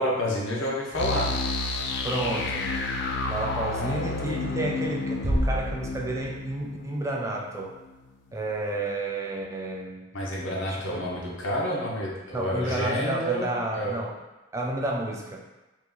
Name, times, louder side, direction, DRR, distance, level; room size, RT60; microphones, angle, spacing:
voice 1, 0.0-1.3 10.1-13.9, equal, 80° left, -3 dB, 0.8 m, -29 dB
sound 1, 0.9-7.8, left 3 dB, 60° left, 0.3 m, -31 dB
voice 2, 2.0-2.7 3.3-7.8 8.3-10.1 10.7-11.1 12.3-14.2 14.5-15.4, right 2 dB, 15° right, -1 dB, 0.3 m, -31 dB
Bass drum, 5.2-6.7, right 1 dB, 40° right, 0.8 m, -28 dB
2.9 x 2.5 x 3.7 m, 1.1 s
head